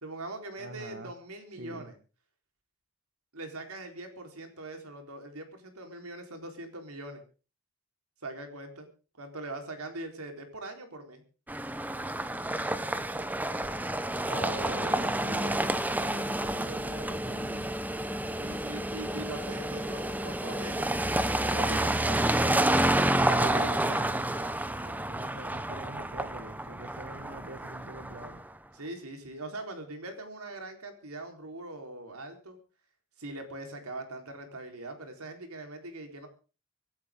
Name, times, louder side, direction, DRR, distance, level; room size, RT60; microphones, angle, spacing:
voice 1, 0.0-1.9 3.3-7.2 8.2-8.9 9.2-11.2 14.3-15.0 18.4-20.9 21.4-22.7 23.2-24.0 28.7-32.6 33.2-36.3, right 2 dB, 90° right, 5 dB, 4.1 m, -41 dB
voice 2, 0.6-1.1 1.6-1.9 14.6-17.8 23.5-24.5 24.8-28.4, right 2 dB, 50° right, 8 dB, 1.3 m, -45 dB
sound 1, 11.5-28.5, right 1 dB, 10° right, 0.8 m, -29 dB
24.5 x 12.0 x 3.7 m, 0.35 s
head